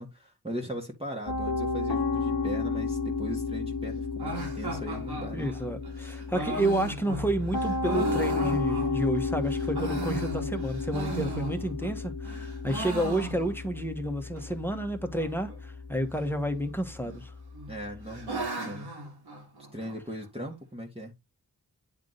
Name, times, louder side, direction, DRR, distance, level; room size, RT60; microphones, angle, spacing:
voice 1, 0.0-5.5 17.7-18.9 19.7-21.1, equal, 15° right, 1.6 m, -39 dB
Piano, 1.3-18.4, left 4 dB, 85° left, 1.5 m, -33 dB
sound 1, 4.2-9.2 9.6-12.0 12.2-13.8 14.1-14.2 14.4-14.5 15.1-15.5 16.6-17.2 17.5-20.0, right 2 dB, 85° right, 2.4 m, -36 dB
voice 2, 5.3-17.3, right 1 dB, 5° left, 1.4 m, -30 dB
9.5 x 3.6 x 3.9 m
wide cardioid pair, 70°, 38 cm